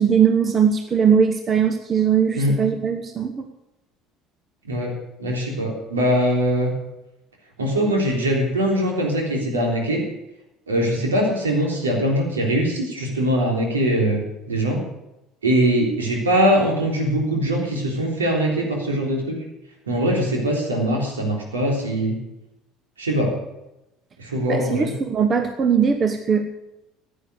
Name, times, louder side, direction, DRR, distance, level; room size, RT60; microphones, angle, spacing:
voice 1, 0.0-3.5 24.5-26.5, right 7 dB, 35° right, 7 dB, 1.2 m, -20 dB
voice 2, 5.2-6.7 7.6-10.0 10.7-14.2 14.5-14.8 15.4-19.4 19.9-22.2 23.0-23.3 24.2-24.9, equal, 75° right, 0 dB, 3.7 m, -22 dB
16.0 x 10.0 x 6.7 m, 0.92 s
figure-of-eight pair, 60°, 0 cm